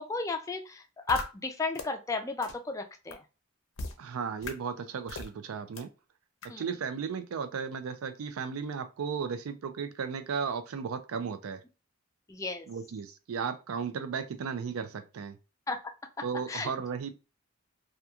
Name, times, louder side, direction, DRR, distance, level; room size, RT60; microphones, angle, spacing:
voice 1, 0.0-3.2 6.5-6.6 12.3-12.7 15.7-15.8 16.5-16.7, left 3 dB, 15° left, 0.3 m, -33 dB
sound 1, 1.1-1.2 1.7-1.8 2.4-2.5 3.1-3.2 3.8-3.9 4.4-4.5 5.1-5.3 5.8-5.9 6.4-6.5, left 3 dB, 65° left, 0.5 m, -37 dB
voice 2, 4.0-5.9 6.6-11.6 12.7-15.4 16.2-17.1, right 6 dB, 85° right, 0.4 m, -35 dB
2.9 x 2.2 x 2.3 m
head